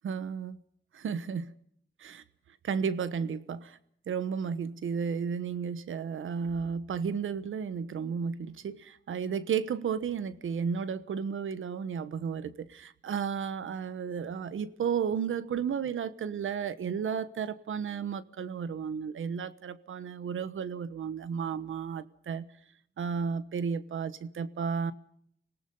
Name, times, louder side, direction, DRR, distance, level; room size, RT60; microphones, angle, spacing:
voice 1, 0.0-0.6 0.9-1.5 2.0-2.2 2.6-3.8 4.1-22.5 23.0-24.9, right 6 dB, 85° right, 1.2 m, -33 dB
26.0 x 18.0 x 5.5 m
cardioid pair, 80°, 20 cm